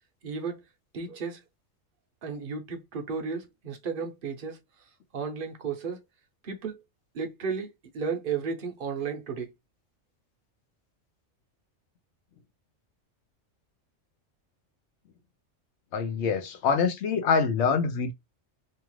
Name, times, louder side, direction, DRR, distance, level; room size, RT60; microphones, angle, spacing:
voice 1, 0.2-0.6 0.9-1.4 2.2-4.6 5.1-6.0 6.4-6.8 7.1-7.7 7.9-9.5, right 5 dB, 55° right, 0.7 m, -33 dB
voice 2, 15.9-18.1, left 5 dB, 65° left, 0.8 m, -25 dB
2.8 x 2.4 x 3.0 m
omnidirectional pair, 1.3 m